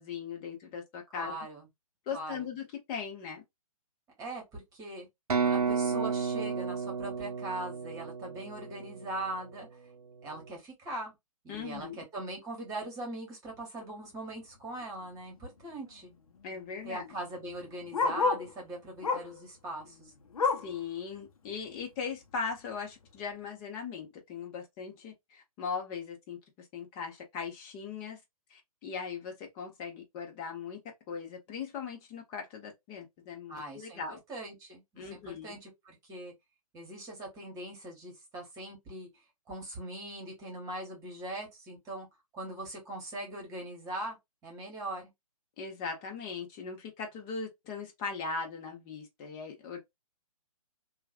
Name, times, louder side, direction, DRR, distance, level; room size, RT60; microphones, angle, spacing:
voice 1, 0.0-1.3 2.1-3.4 11.5-12.0 16.4-17.1 20.6-26.4 26.7-28.2 28.5-30.8 31.1-34.2 35.0-35.6 45.6-49.8, left 5 dB, 25° left, 1.1 m, -39 dB
voice 2, 1.1-1.7 2.1-2.5 4.2-5.1 5.4-9.7 10.2-11.1 11.4-16.1 16.8-20.0 33.5-34.0 34.3-36.3 36.7-39.1 39.5-42.1 42.3-44.1 44.4-45.0, right 1 dB, 20° right, 1.5 m, -41 dB
sound 1, 5.3-9.1, right 5 dB, 75° right, 0.6 m, -32 dB
Bark, 14.8-15.1 15.4-15.5 15.7-18.5 19.0-19.4 19.8-20.8 21.3-21.4 21.8-21.9 22.5-22.6, left 4 dB, 65° left, 0.8 m, -32 dB
3.0 x 2.4 x 2.4 m
figure-of-eight pair, 130°, 19 cm